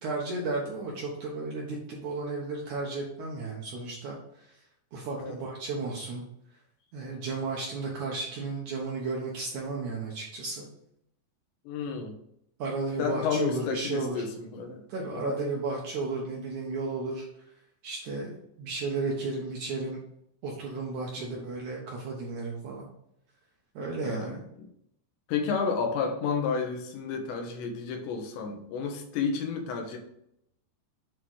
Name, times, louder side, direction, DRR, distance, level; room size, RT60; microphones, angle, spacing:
voice 1, 0.0-4.6 4.9-6.2 6.9-10.7 12.6-14.2 14.9-17.3 17.8-20.0 20.4-22.9 23.8-24.4, right 3 dB, 75° right, -2 dB, 1.8 m, -33 dB
voice 2, 11.6-12.2 13.0-14.9 15.1-15.4 21.2-21.5 24.0-24.4 25.3-30.0, left 5 dB, 85° left, 4 dB, 3.3 m, -31 dB
8.5 x 3.8 x 4.6 m, 0.75 s
omnidirectional pair, 5.0 m